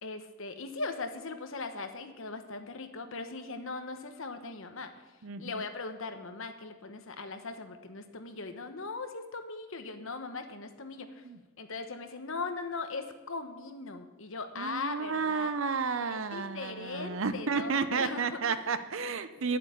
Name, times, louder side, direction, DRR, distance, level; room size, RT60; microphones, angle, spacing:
voice 1, 0.0-5.1 5.4-11.2 11.6-15.5 16.0-18.6, left 3 dB, 60° left, 7 dB, 1.1 m, -39 dB
voice 2, 5.2-5.6 11.2-11.4 14.6-19.6, right 5 dB, 60° right, 12 dB, 0.7 m, -32 dB
9.5 x 8.1 x 8.2 m, 1.1 s
head